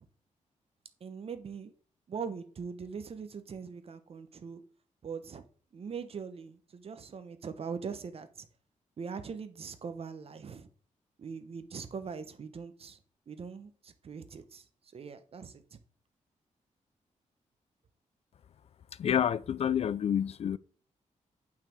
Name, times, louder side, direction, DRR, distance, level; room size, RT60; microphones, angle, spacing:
voice 1, 1.0-1.7 2.1-4.6 5.0-5.4 5.7-8.5 9.0-10.7 11.2-13.0 13.3-14.6 14.9-15.5, right 6 dB, 50° right, 1.0 m, -41 dB
voice 2, 19.0-20.6, left 9 dB, 50° left, 0.4 m, -28 dB
8.4 x 5.8 x 4.5 m
wide cardioid pair, 135°, 13 cm